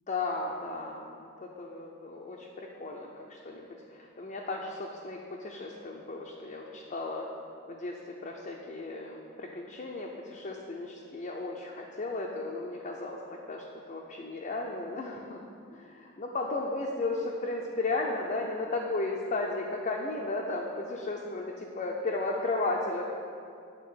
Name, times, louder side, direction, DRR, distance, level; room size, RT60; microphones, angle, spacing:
voice 1, 0.1-7.3 7.7-13.2 13.5-15.4 15.7-23.0, left 2 dB, 35° left, -1 dB, 0.5 m, -35 dB
9.5 x 3.5 x 5.6 m, 2.4 s
head